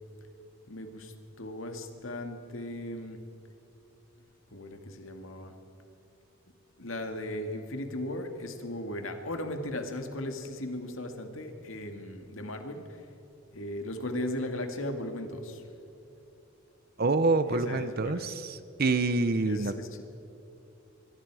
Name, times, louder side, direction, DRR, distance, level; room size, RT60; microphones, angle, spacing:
voice 1, 0.7-3.2 4.5-5.5 6.8-13.0 13.5-15.6 17.5-18.3 19.4-20.0, left 1 dB, 70° left, 5 dB, 2.2 m, -37 dB
voice 2, 17.0-19.7, right 3 dB, 50° right, 11 dB, 0.8 m, -27 dB
25.5 x 23.5 x 4.9 m, 2.8 s
head